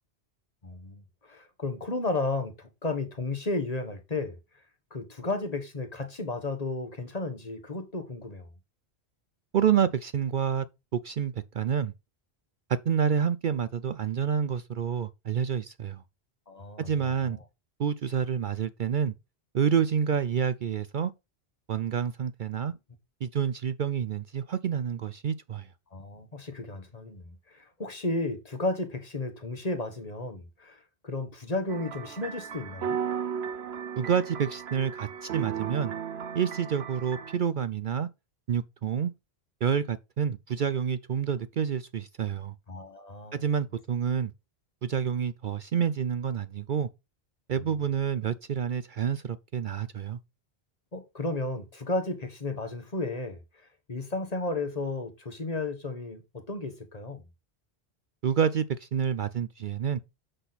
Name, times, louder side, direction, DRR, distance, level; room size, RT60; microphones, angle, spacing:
voice 1, 0.6-4.4 4.9-8.5 16.5-16.9 17.3-17.4 25.9-33.0 42.7-43.5 50.9-53.4 53.9-57.2, left 2 dB, 40° left, 1.4 m, -33 dB
voice 2, 9.5-10.7 10.9-11.9 12.9-16.0 16.8-17.4 17.8-19.1 19.5-21.1 21.7-22.7 23.2-25.7 34.0-35.9 36.3-38.1 38.5-39.1 39.6-42.5 43.4-44.3 44.8-46.9 47.5-50.2 58.2-60.0, right 7 dB, 55° right, 0.6 m, -28 dB
sound 1, 31.7-37.4, right 7 dB, 75° right, 1.0 m, -35 dB
7.7 x 6.2 x 4.1 m
omnidirectional pair, 1.1 m